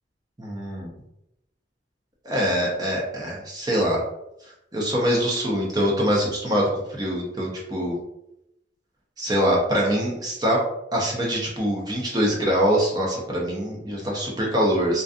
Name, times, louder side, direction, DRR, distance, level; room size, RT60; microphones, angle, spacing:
voice 1, 0.4-0.9 2.2-4.0 4.7-6.6 7.0-8.0 9.2-10.6 10.9-15.0, equal, 20° right, -2 dB, 0.6 m, -24 dB
2.5 x 2.3 x 2.3 m, 0.83 s
head